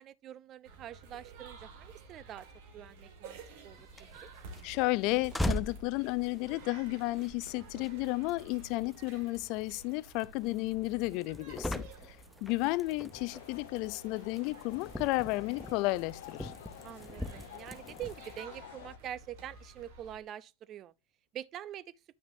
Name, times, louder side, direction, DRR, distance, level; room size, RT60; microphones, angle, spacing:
voice 1, 0.0-2.5 2.7-3.8 4.2-4.3 16.8-20.9 21.3-21.9, right 11 dB, 40° right, 0.5 m, -45 dB
sound 1, 0.6-20.2, right 3 dB, 70° right, 1.8 m, -52 dB
sound 2, 3.7-18.4, left 1 dB, 5° left, 0.6 m, -42 dB
voice 2, 4.6-12.2 12.4-16.5, left 21 dB, 55° left, 0.4 m, -33 dB
sound 3, 13.1-19.0, left 12 dB, 75° left, 0.8 m, -51 dB
9.1 x 5.8 x 2.7 m
hypercardioid pair, 110°, 0 cm